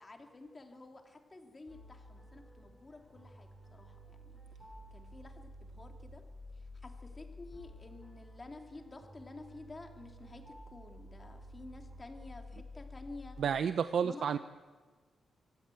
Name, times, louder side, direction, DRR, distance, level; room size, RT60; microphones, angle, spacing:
voice 1, 0.0-4.4 4.9-6.2 6.5-13.4 14.0-14.4, left 2 dB, 20° left, 4 dB, 2.6 m, -51 dB
sound 1, 1.7-13.4, left 1 dB, 10° right, 7.2 m, -52 dB
voice 2, 13.4-14.4, right 7 dB, 65° right, 11 dB, 0.7 m, -30 dB
25.0 x 14.0 x 9.1 m, 1.4 s
wide cardioid pair, 155°, 0 cm